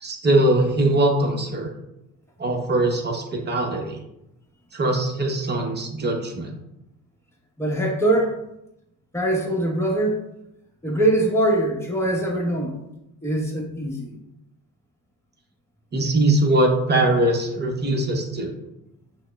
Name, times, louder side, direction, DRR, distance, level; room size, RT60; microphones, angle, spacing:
voice 1, 0.0-1.7 2.4-4.0 4.7-6.6 15.9-18.5, right 1 dB, 25° right, 1 dB, 0.9 m, -21 dB
voice 2, 7.6-8.4 9.1-10.2 10.8-12.8 13.2-14.2, right 1 dB, 5° left, -1 dB, 1.0 m, -22 dB
6.1 x 2.1 x 2.3 m, 0.85 s
supercardioid pair, 85°, 38 cm